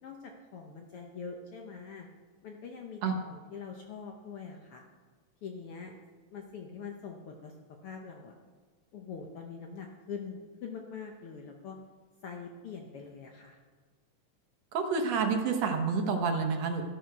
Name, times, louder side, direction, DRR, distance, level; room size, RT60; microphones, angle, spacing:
voice 1, 0.0-2.1 2.4-3.0 3.3-4.8 5.4-5.9 6.3-7.5 7.8-8.3 8.9-11.8 12.2-13.6, left 5 dB, 65° left, 2 dB, 1.5 m, -43 dB
voice 2, 14.7-16.8, right 5 dB, 65° right, 4 dB, 2.1 m, -29 dB
13.5 x 11.5 x 4.6 m, 1.4 s
omnidirectional pair, 3.5 m